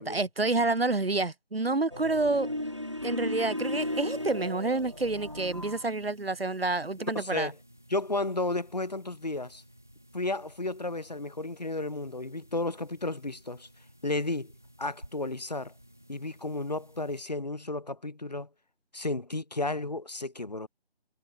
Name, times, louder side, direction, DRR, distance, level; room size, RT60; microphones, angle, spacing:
voice 1, 0.0-2.5 3.0-7.5, right 3 dB, 65° right, 1.9 m, -28 dB
sound 1, 1.9-5.8, left 1 dB, 30° right, 0.8 m, -35 dB
sound 2, 3.6-17.2, equal, 5° right, 1.5 m, -56 dB
voice 2, 7.2-7.6 7.9-9.6 10.1-13.7 14.0-14.5 14.8-15.7 16.1-18.5 18.9-20.7, left 2 dB, 40° left, 1.9 m, -33 dB
figure-of-eight pair, 175°, 32 cm